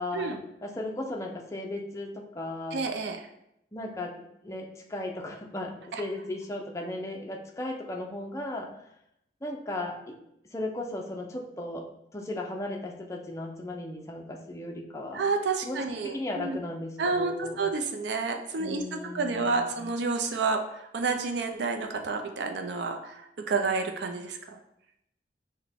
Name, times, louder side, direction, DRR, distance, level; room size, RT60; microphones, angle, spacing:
voice 1, 0.0-2.8 3.7-4.1 4.4-8.7 9.4-10.1 10.5-11.9 12.1-15.3 15.6-17.7 18.6-19.9, left 1 dB, 15° left, 1 dB, 0.5 m, -36 dB
voice 2, 2.7-3.2 5.9-6.0 15.1-16.6 17.0-18.8 19.1-23.2 23.5-24.4, right 4 dB, 75° right, 4 dB, 0.4 m, -29 dB
5.8 x 2.2 x 3.4 m, 0.79 s
head